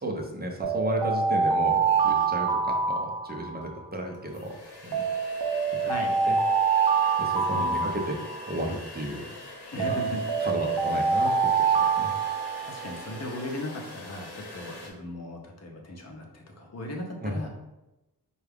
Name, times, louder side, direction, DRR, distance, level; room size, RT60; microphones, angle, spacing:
voice 1, 0.0-4.6 4.8-5.5 6.3-6.4 7.2-8.2 8.5-9.2 9.8-10.0 10.4-12.1 17.2-17.4, right 1 dB, 25° right, 1 dB, 0.6 m, -33 dB
sound 1, 0.6-3.8 4.9-8.7 9.8-13.0, right 5 dB, 70° right, 0.6 m, -25 dB
sound 2, 3.6-3.7 4.1-14.9, left 2 dB, 75° left, 0.9 m, -43 dB
voice 2, 5.8-6.1 7.5-7.7 9.7-10.2 12.6-17.5, left 1 dB, 40° left, 1 dB, 0.8 m, -37 dB
4.5 x 2.3 x 3.4 m, 0.98 s
wide cardioid pair, 95°, 40 cm